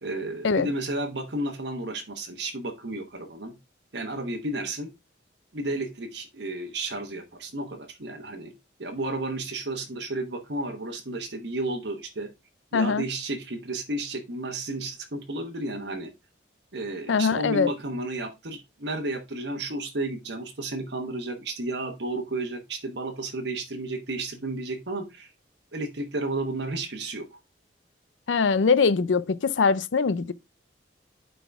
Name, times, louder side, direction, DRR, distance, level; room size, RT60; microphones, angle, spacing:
voice 1, 0.0-3.5 3.9-4.9 5.5-8.5 8.8-12.3 12.7-16.1 16.7-25.3 25.7-27.4, right 2 dB, 70° right, 1.2 m, -32 dB
voice 2, 12.7-13.0 17.1-17.7 28.3-30.3, left 5 dB, 85° left, 0.5 m, -22 dB
9.3 x 4.1 x 3.5 m
head